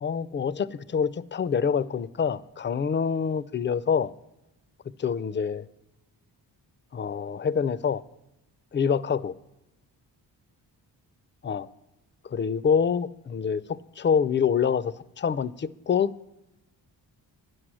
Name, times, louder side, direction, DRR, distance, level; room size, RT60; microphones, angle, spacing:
voice 1, 0.0-4.1 5.0-5.7 6.9-8.0 8.7-9.3 11.4-11.7 12.3-16.1, left 6 dB, 30° left, 0.4 m, -26 dB
9.6 x 6.2 x 6.2 m
supercardioid pair, 50°, 44 cm